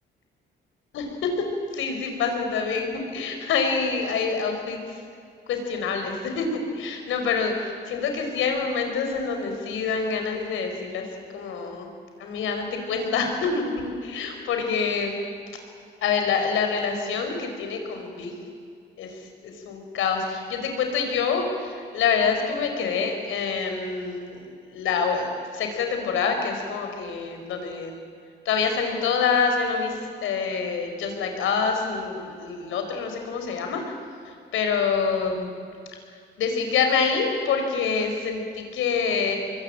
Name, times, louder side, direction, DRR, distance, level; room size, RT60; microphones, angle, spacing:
voice 1, 0.9-1.5 1.7-5.0 5.5-7.5 7.9-11.1 11.3-11.9 12.2-15.1 16.0-18.3 19.0-24.4 24.7-25.3 25.5-27.9 28.5-33.8 34.3-35.5 36.4-39.4, left 5 dB, 85° left, 4 dB, 5.2 m, -26 dB
25.5 x 22.0 x 8.9 m, 2.3 s
cardioid pair, 90°, 20 cm